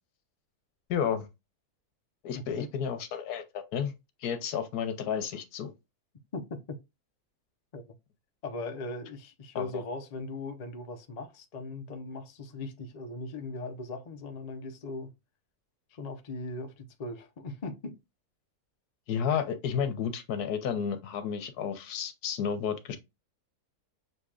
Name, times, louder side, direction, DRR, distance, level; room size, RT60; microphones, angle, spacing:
voice 1, 0.9-1.3 2.2-3.9 4.2-5.7 9.5-9.8 19.1-23.0, left 7 dB, 85° left, 1.3 m, -32 dB
voice 2, 2.3-2.7 6.3-6.8 7.7-7.8 8.4-15.1 15.9-18.0, left 2 dB, 55° left, 0.4 m, -39 dB
6.5 x 2.8 x 2.4 m
omnidirectional pair, 1.6 m